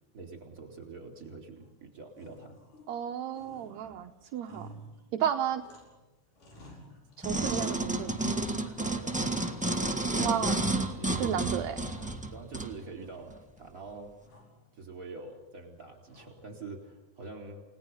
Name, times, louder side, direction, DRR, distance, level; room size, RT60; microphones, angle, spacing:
voice 1, 0.1-2.6 8.8-9.2 9.6-10.4 11.0-11.6 12.3-14.1 14.7-17.6, right 3 dB, 25° right, 3 dB, 4.2 m, -45 dB
sound 1, 1.2-1.8 2.1-3.1 3.3-6.1 6.4-7.4 7.7-9.1 9.5-10.2 10.6-11.3 11.6-12.7 13.0-13.7 14.2-14.7 16.1-16.6, equal, 85° left, 6.7 m, -53 dB
voice 2, 2.9-4.7 5.2-5.6 7.2-8.1 10.2-10.6 11.2-11.8, right 9 dB, 70° right, 4 dB, 2.0 m, -32 dB
sound 2, 7.2-12.7 13.3-13.4, right 2 dB, 10° right, 0.3 m, -31 dB
30.0 x 19.0 x 5.7 m, 1.1 s
omnidirectional pair, 3.6 m